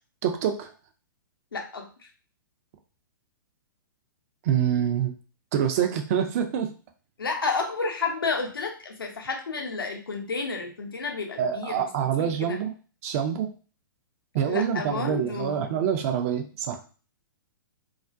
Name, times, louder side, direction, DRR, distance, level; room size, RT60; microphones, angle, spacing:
voice 1, 0.2-0.7 4.4-5.1 5.5-6.7 11.4-12.7 13.0-13.5 14.3-16.8, right 8 dB, 40° right, 5 dB, 0.4 m, -26 dB
voice 2, 1.5-1.9 7.2-11.8 12.2-12.6 14.5-15.6, left 4 dB, 80° left, 2 dB, 0.6 m, -31 dB
2.4 x 2.1 x 2.5 m, 0.37 s
figure-of-eight pair, 115°, 12 cm